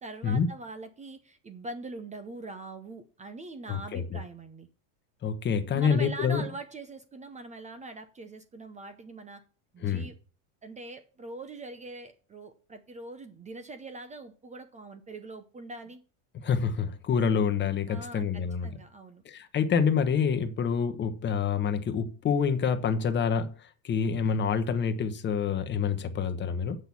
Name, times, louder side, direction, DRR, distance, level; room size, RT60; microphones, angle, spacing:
voice 1, 0.0-4.7 5.7-9.4 9.7-10.2 10.6-16.0 17.9-19.2, right 2 dB, 15° right, 0.7 m, -42 dB
voice 2, 3.7-4.2 5.2-6.4 9.8-10.1 16.4-18.7 19.2-26.8, left 6 dB, 25° left, 1.1 m, -27 dB
7.9 x 6.2 x 7.1 m
supercardioid pair, 135°, 42 cm